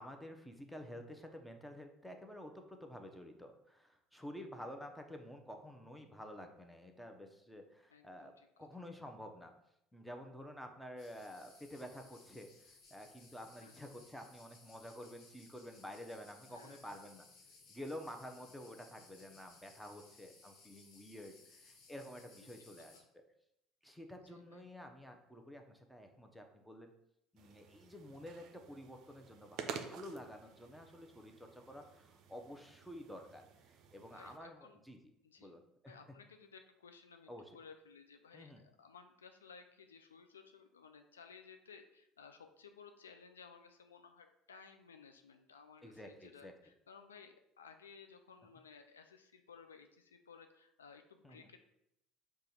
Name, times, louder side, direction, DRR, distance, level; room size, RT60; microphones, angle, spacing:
voice 1, 0.0-9.5 9.9-17.2 17.7-23.0 23.8-26.9 27.3-35.0 35.4-35.9 37.3-37.4 38.3-38.6 45.8-46.5 51.2-51.5, equal, 5° left, 4 dB, 0.7 m, -50 dB
voice 2, 7.9-8.7 13.6-13.9 16.4-17.0 22.4-22.5 22.8-23.0 24.2-24.6 34.0-34.8 35.2-35.5 35.9-51.6, left 6 dB, 90° left, 6 dB, 0.3 m, -58 dB
sound 1, 11.0-23.0, left 3 dB, 60° left, 1.1 m, -62 dB
sound 2, 27.4-34.4, right 7 dB, 60° right, 0.5 m, -51 dB
5.0 x 2.4 x 4.3 m, 0.80 s
hypercardioid pair, 65°, 0 cm